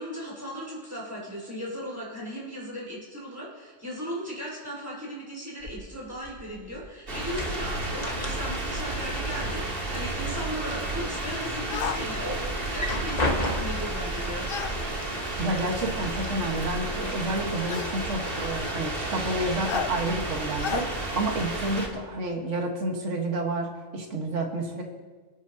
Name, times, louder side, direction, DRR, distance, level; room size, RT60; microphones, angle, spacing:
voice 1, 0.0-14.5, equal, 15° right, -5 dB, 4.8 m, -37 dB
sound 1, 5.6-6.9 7.2-8.8 9.1-10.1 10.5-11.2 11.7-11.8 12.6-14.0 14.9-15.0 15.5-16.1, left 1 dB, 35° left, 1.2 m, -33 dB
sound 2, 7.1-21.9, right 2 dB, 50° right, 1.9 m, -32 dB
sound 3, 11.7-12.0 14.5-14.8 16.0-16.1 17.7-18.0 19.7-19.9 20.6-20.9, left 8 dB, 60° left, 0.7 m, -31 dB
voice 2, 15.4-20.9 21.1-24.8, right 2 dB, 80° right, 2 dB, 1.8 m, -30 dB
24.5 x 9.1 x 2.8 m, 1.4 s
omnidirectional pair, 1.2 m